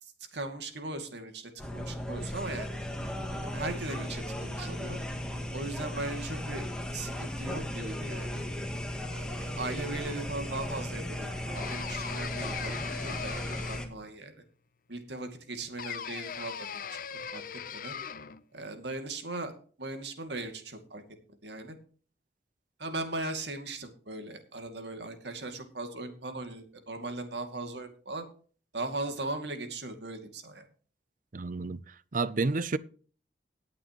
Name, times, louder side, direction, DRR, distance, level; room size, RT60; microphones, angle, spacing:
voice 1, 0.0-2.8 3.4-5.0 5.5-6.6 6.9-8.4 9.1-12.8 13.0-14.3 14.9-17.4 17.7-17.9 18.5-19.5 19.8-21.0 21.4-21.8 22.8-28.3 28.7-30.7, right 2 dB, 75° right, 2.4 m, -38 dB
sound 1, 1.6-13.9, left 1 dB, 5° left, 1.8 m, -36 dB
sound 2, 11.6-14.1 15.8-18.4, left 7 dB, 50° left, 0.7 m, -39 dB
voice 2, 31.3-31.8 32.1-32.8, right 3 dB, 50° right, 0.6 m, -29 dB
18.5 x 8.6 x 3.0 m
head